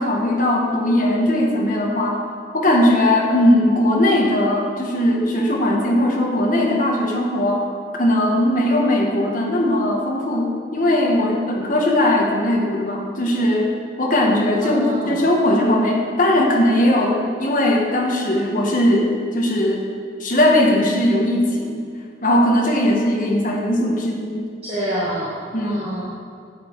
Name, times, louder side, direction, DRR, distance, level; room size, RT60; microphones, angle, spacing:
voice 1, 0.0-2.2 2.5-7.6 7.9-13.7 14.0-19.8 20.2-21.8 22.2-24.5 25.5-25.8, left 1 dB, 45° left, -1 dB, 1.4 m, -19 dB
voice 2, 14.6-15.2 24.6-25.4 25.6-26.0, right 1 dB, 35° right, -9 dB, 1.7 m, -26 dB
9.0 x 8.7 x 4.6 m, 2.3 s
head